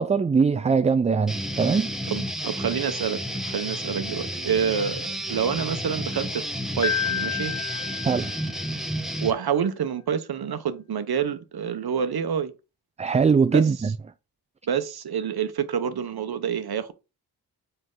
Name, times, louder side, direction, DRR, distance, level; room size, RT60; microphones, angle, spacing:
voice 1, 0.0-1.9 8.0-8.3 13.0-13.9, right 5 dB, 20° right, 0.3 m, -21 dB
Guitar, 1.3-9.3, equal, ahead, 1.0 m, -31 dB
voice 2, 2.1-3.2 3.5-6.5 6.8-7.5 9.2-12.5 13.5-13.6 14.7-16.9, right 7 dB, 65° right, 0.9 m, -27 dB
Piano, 6.8-8.9, left 9 dB, 50° left, 0.6 m, -30 dB
5.5 x 4.6 x 3.7 m
cardioid pair, 50°, 40 cm